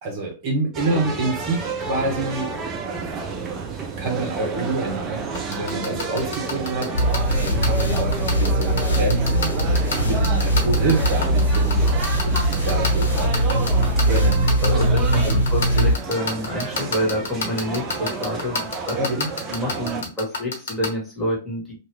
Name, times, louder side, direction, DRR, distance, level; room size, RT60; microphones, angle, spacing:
voice 1, 0.0-2.5 4.0-6.9 7.4-11.8 12.2-14.7 15.2-15.4 19.0-19.3, right 2 dB, 40° right, 0 dB, 1.1 m, -27 dB
sound 1, 0.7-20.0, right 5 dB, 20° right, 0.6 m, -30 dB
sound 2, 5.3-20.9, left 4 dB, 60° left, 1.2 m, -26 dB
sound 3, 6.9-16.0, right 1 dB, 75° left, 1.3 m, -20 dB
voice 2, 14.6-19.0 19.5-21.7, equal, 10° left, -5 dB, 1.6 m, -28 dB
2.8 x 2.4 x 3.2 m, 0.33 s
figure-of-eight pair, 105°, 0 cm